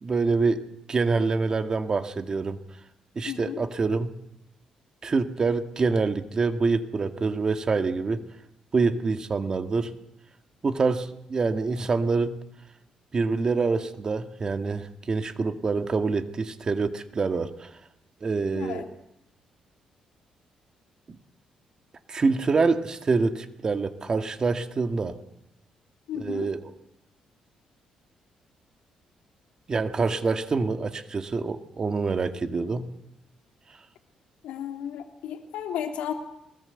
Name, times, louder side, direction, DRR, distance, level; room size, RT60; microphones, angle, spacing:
voice 1, 0.0-0.6 0.9-2.6 3.2-4.1 5.0-8.2 8.7-9.9 10.6-12.4 13.1-17.7 18.2-18.8 22.1-25.2 26.1-26.6 29.7-32.9, right 4 dB, 35° right, 9 dB, 1.9 m, -26 dB
voice 2, 3.2-3.6 18.5-18.9 26.1-26.5 34.4-36.1, left 9 dB, 85° left, 6 dB, 3.1 m, -33 dB
22.5 x 20.0 x 8.1 m, 0.84 s
cardioid pair, 95°, 2 cm